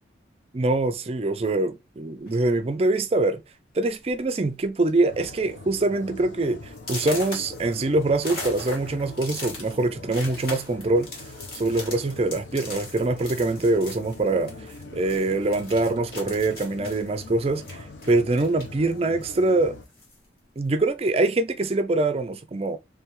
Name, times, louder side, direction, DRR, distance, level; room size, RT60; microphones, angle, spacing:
voice 1, 0.5-3.4 3.8-11.1 11.6-14.5 14.9-17.6 18.1-19.8 20.6-22.8, right 2 dB, 30° right, 0.4 m, -24 dB
sound 1, 2.2-2.6 3.4-3.5 3.9-4.1 4.4-4.9 5.3-5.4 5.9-6.0 6.8-14.8 15.1-18.8 19.2-20.2, left 2 dB, 50° left, 1.7 m, -39 dB
sound 2, 5.1-19.9, left 2 dB, 85° left, 0.9 m, -43 dB
3.4 x 3.2 x 3.0 m
head